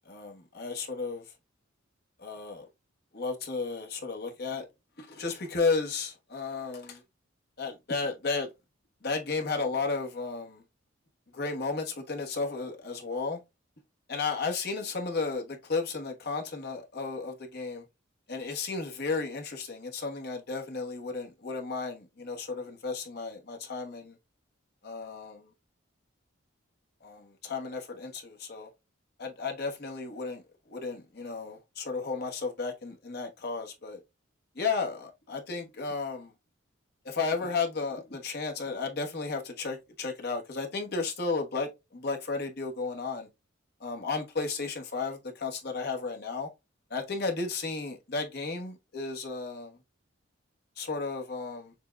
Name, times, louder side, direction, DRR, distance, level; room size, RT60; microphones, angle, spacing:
voice 1, 0.1-1.2 2.2-2.6 3.1-4.7 5.0-7.0 7.6-8.5 9.0-10.6 11.3-13.4 14.1-17.8 18.3-24.2 24.8-25.5 27.0-28.7 29.2-30.4 30.7-34.0 34.6-36.3 37.0-43.3 43.8-46.5 46.9-49.8 50.8-51.7, left 4 dB, 50° left, 1.1 m, -33 dB
6.6 x 2.2 x 2.4 m
head